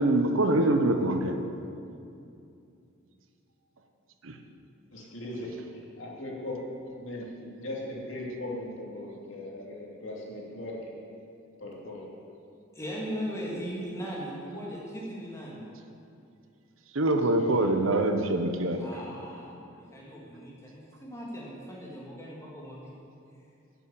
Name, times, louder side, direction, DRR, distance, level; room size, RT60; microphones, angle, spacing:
voice 1, 0.0-1.3 4.2-4.3 16.9-18.8, right 2 dB, 80° right, 6 dB, 1.0 m, -24 dB
voice 2, 4.9-6.6 7.0-10.9 11.6-12.1 17.1-17.8, left 1 dB, 65° left, -3 dB, 2.7 m, -39 dB
voice 3, 12.7-15.6 18.8-22.9, equal, 15° left, -5 dB, 2.7 m, -38 dB
11.0 x 7.4 x 8.4 m, 2.5 s
head